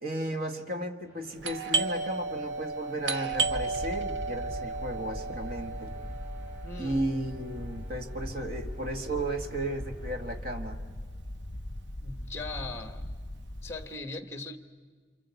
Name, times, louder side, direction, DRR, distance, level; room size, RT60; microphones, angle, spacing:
voice 1, 0.0-5.9 6.8-10.8, right 1 dB, 55° right, 5 dB, 1.7 m, -34 dB
sound 1, 1.0-10.4, equal, 10° right, 6.8 m, -56 dB
Doorbell, 1.4-10.8 11.0-11.1 11.8-12.1 12.4-13.8, right 4 dB, 85° right, 1.1 m, -34 dB
sound 2, 3.3-13.8, left 1 dB, 40° left, 1.0 m, -40 dB
voice 2, 6.6-7.1 12.0-13.0 13.6-14.6, left 3 dB, 15° left, 9 dB, 1.3 m, -39 dB
27.5 x 25.0 x 8.3 m, 1.5 s
head